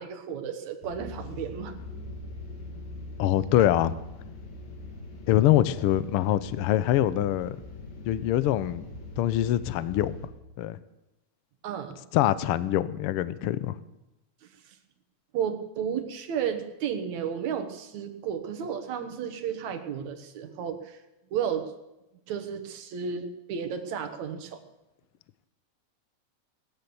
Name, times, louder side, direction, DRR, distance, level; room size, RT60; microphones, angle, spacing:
voice 1, 0.0-1.8 11.6-12.0 14.7-14.8 15.3-21.0 21.3-21.7 22.3-24.6, right 8 dB, 75° right, 7 dB, 2.6 m, -33 dB
sound 1, 0.8-10.3, left 2 dB, 70° left, 3.7 m, -42 dB
voice 2, 3.2-3.9 5.3-7.6 8.1-8.8 9.2-10.1 10.6-10.8 12.1-13.8, left 13 dB, 90° left, 15 dB, 1.2 m, -24 dB
19.0 x 10.5 x 7.0 m, 0.96 s
omnidirectional pair, 3.4 m